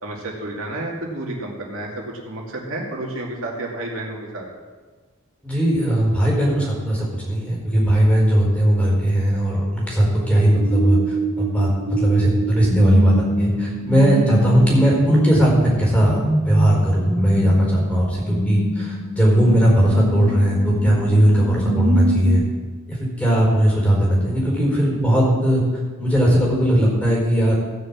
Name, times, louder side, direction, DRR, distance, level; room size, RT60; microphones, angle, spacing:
voice 1, 0.0-4.5, right 2 dB, 75° right, -2 dB, 2.5 m, -30 dB
voice 2, 5.4-16.2 16.5-22.4 22.9-25.6 26.0-27.5, equal, 5° left, -4 dB, 4.6 m, -18 dB
sound 1, 10.1-22.3, right 1 dB, 25° right, 3.4 m, -24 dB
16.0 x 6.6 x 7.5 m, 1.4 s
head